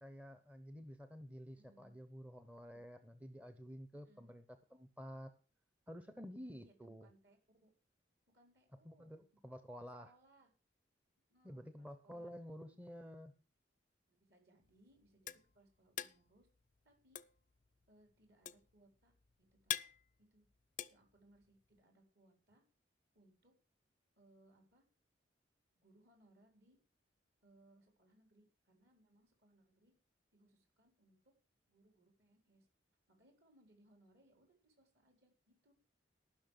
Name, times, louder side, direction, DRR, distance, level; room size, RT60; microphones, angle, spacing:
voice 1, 0.0-4.4 4.7-5.3 5.9-7.1 8.8-10.1 11.4-13.3, equal, 10° right, 9 dB, 0.7 m, -51 dB
voice 2, 1.6-2.0 2.7-2.8 3.9-4.3 6.4-7.7 8.3-9.1 9.8-10.5 11.3-12.3 12.7-13.0 14.1-16.5 16.8-17.2 17.9-19.1 19.4-19.8 20.2-20.5 20.9-22.6 23.1-23.6 24.2-24.8 25.8-26.8 27.4-29.9 30.3-31.2 31.7-32.7 33.1-35.7, right 1 dB, 60° right, 4 dB, 4.4 m, -70 dB
sound 1, 14.6-21.8, left 10 dB, 40° left, 0.5 m, -46 dB
14.5 x 6.3 x 6.6 m, 0.37 s
head